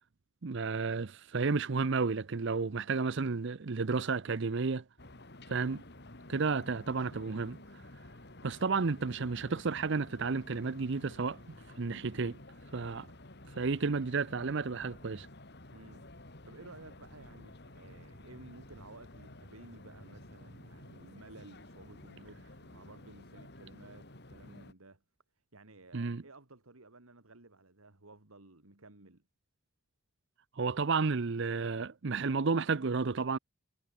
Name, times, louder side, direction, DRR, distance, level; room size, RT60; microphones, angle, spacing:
voice 1, 0.4-4.8 5.5-5.8 6.3-7.6 8.4-11.4 11.8-12.4 12.7-13.1 13.5-15.3 25.9-26.2 30.6-33.4, right 4 dB, 60° right, 0.6 m, -32 dB
sound 1, 5.0-24.7, left 1 dB, 50° left, 3.0 m, -52 dB
voice 2, 15.7-16.1 16.4-25.0 25.5-29.2, right 2 dB, 90° right, 2.4 m, -55 dB
head